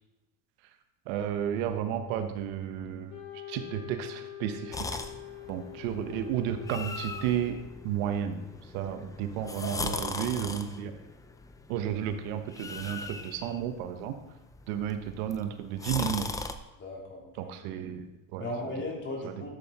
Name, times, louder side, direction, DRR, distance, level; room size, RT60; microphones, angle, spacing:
voice 1, 1.1-3.2 3.5-4.8 5.5-7.6 7.8-8.4 8.7-11.0 11.7-14.1 14.7-16.3 17.4-18.5 19.2-19.4, right 9 dB, 70° right, 7 dB, 1.2 m, -32 dB
Wind instrument woodwind instrument, 3.1-8.2, left 12 dB, 85° left, 2.6 m, -45 dB
sound 1, 4.7-16.5, left 3 dB, 10° left, 0.4 m, -40 dB
voice 2, 9.6-10.3 16.8-17.5 18.4-19.5, left 2 dB, 25° left, -2 dB, 3.6 m, -37 dB
13.0 x 7.8 x 4.3 m, 1.0 s
supercardioid pair, 130°, 44 cm